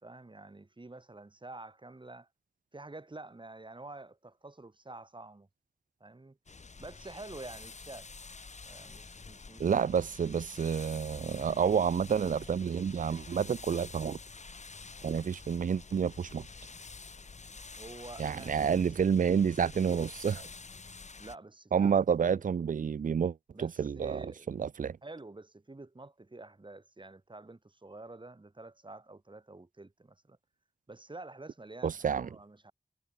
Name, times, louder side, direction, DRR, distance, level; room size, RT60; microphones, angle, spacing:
voice 1, 0.0-2.3 2.7-5.5 6.0-6.4 6.8-8.1 8.6-9.9 17.8-19.2 21.2-22.4 23.5-24.5 25.0-30.4 30.9-32.7, right 2 dB, 35° right, 4.0 m, -48 dB
sound 1, 6.5-21.4, left 4 dB, 55° left, 1.6 m, -48 dB
voice 2, 9.6-14.2 15.0-16.5 18.2-20.5 21.7-25.0 31.8-32.3, right 7 dB, 70° right, 0.5 m, -29 dB
wide cardioid pair, 75°, 14 cm